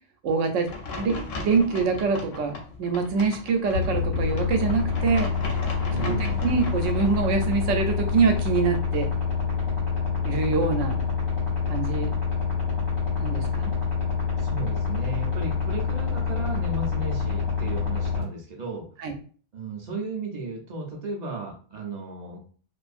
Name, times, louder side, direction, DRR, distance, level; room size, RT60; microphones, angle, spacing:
voice 1, 0.2-0.7 1.0-5.3 6.0-6.2 6.4-9.1 10.2-11.0 11.7-12.1 13.2-13.7 19.0-19.1, right 4 dB, 80° right, 5 dB, 0.9 m, -25 dB
sound 1, 0.7-7.2, left 2 dB, 85° left, 1.0 m, -37 dB
sound 2, 3.7-18.2, left 5 dB, 50° left, 1.5 m, -27 dB
voice 2, 5.8-6.5 14.4-18.9 19.5-22.4, right 3 dB, 50° right, -1 dB, 0.6 m, -35 dB
2.5 x 2.5 x 2.4 m, 0.42 s
omnidirectional pair, 1.3 m